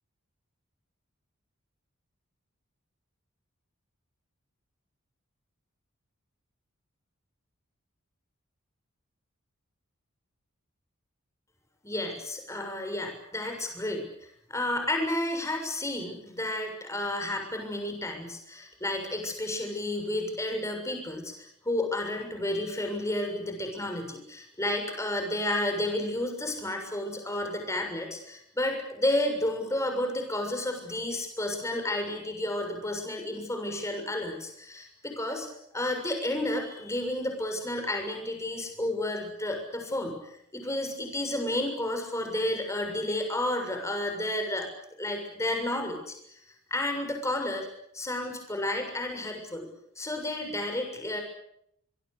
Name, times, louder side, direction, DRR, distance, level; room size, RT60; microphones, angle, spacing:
voice 1, 11.8-14.1 14.5-35.5 35.7-44.7 45.0-46.2 46.7-47.7 47.9-49.7 50.0-51.2, left 1 dB, 15° left, 4 dB, 6.8 m, -31 dB
26.0 x 22.0 x 8.4 m, 0.74 s
head